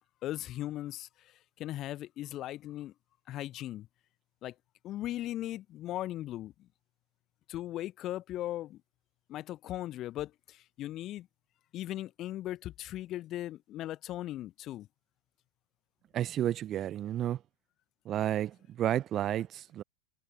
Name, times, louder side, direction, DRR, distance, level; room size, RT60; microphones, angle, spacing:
voice 1, 0.2-2.9 3.3-3.9 4.4-4.5 4.8-6.5 7.5-8.8 9.3-11.3 11.7-14.9, left 14 dB, 35° left, 1.3 m, -38 dB
voice 2, 16.1-17.4 18.1-19.8, right 11 dB, 30° right, 0.7 m, -31 dB
figure-of-eight pair, 90°, 0 cm